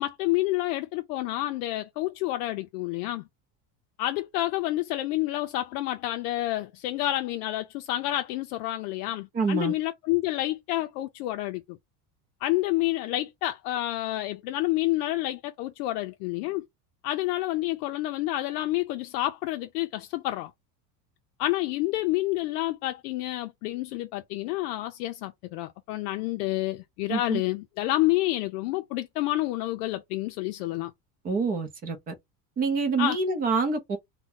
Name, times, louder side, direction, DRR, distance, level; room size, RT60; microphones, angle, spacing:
voice 1, 0.0-3.2 4.0-11.8 12.4-16.7 17.0-20.5 21.4-30.9 33.0-33.2, left 16 dB, 75° left, 0.5 m, -29 dB
voice 2, 9.3-9.7 27.1-27.4 31.2-32.1 32.6-34.0, right 4 dB, 20° right, 0.5 m, -26 dB
2.6 x 2.2 x 3.6 m
cardioid pair, 165°, 45 cm